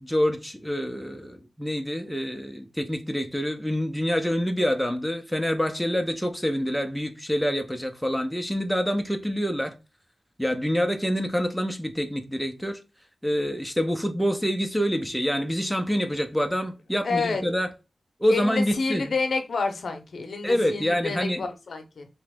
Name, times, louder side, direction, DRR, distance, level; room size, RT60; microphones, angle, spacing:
voice 1, 0.0-9.7 10.4-12.8 13.2-17.7 18.2-19.0 20.4-21.5, equal, ahead, 0.5 m, -26 dB
voice 2, 17.0-17.4 18.3-22.1, left 4 dB, 65° left, 0.6 m, -29 dB
3.1 x 2.9 x 3.4 m
wide cardioid pair, 130°, 0 cm